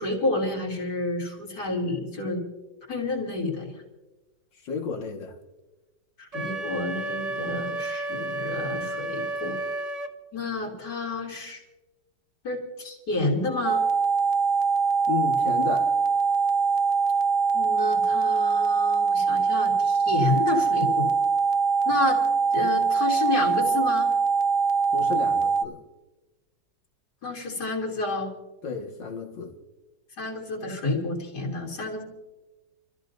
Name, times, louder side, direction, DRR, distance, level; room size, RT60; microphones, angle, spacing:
voice 1, 0.0-2.4 2.9-3.7 6.2-9.6 10.3-11.6 12.4-13.9 17.5-21.1 21.9-22.2 22.5-24.1 27.2-28.3 30.2-32.0, left 2 dB, 65° left, 3.6 m, -29 dB
voice 2, 4.6-5.4 15.1-16.0 24.9-25.8 28.6-29.5, left 5 dB, 85° left, 2.4 m, -32 dB
Wind instrument woodwind instrument, 6.3-10.1, right 2 dB, 35° right, 0.6 m, -32 dB
sound 1, 13.6-25.6, right 5 dB, 85° right, 0.6 m, -23 dB
29.5 x 14.0 x 2.7 m
omnidirectional pair, 1.9 m